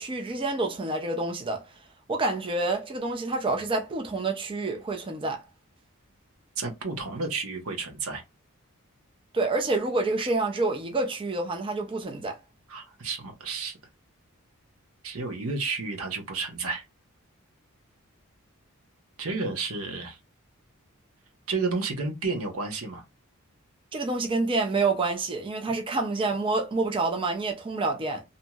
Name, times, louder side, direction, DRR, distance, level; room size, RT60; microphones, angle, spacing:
voice 1, 0.0-1.6 2.1-5.4 9.3-12.4 23.9-28.2, right 3 dB, 25° right, 0.4 m, -28 dB
voice 2, 6.6-8.2 12.7-13.8 15.0-16.8 19.2-20.2 21.5-23.0, right 4 dB, 80° right, 0.9 m, -31 dB
2.9 x 2.7 x 2.3 m
head